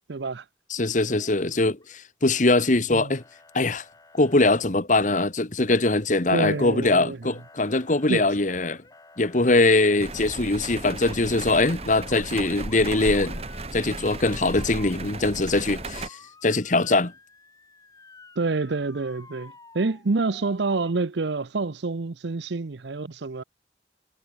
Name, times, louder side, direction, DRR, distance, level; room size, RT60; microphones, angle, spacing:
voice 1, 0.1-0.4 2.9-3.1 6.3-7.2 8.1-8.3 18.4-23.4, right 3 dB, 75° right, 0.7 m, -27 dB
voice 2, 0.7-3.2 3.5-3.8 4.1-8.8 9.2-13.4 13.7-17.1, left 2 dB, 45° left, 1.4 m, -22 dB
Motor vehicle (road) / Siren, 1.0-1.9 2.2-2.8 3.1-4.5 6.3-7.0 7.2-10.2 10.6-11.2 11.6-20.9, left 3 dB, 20° left, 5.7 m, -51 dB
sound 1, 10.0-16.1, right 2 dB, 35° right, 1.7 m, -35 dB
head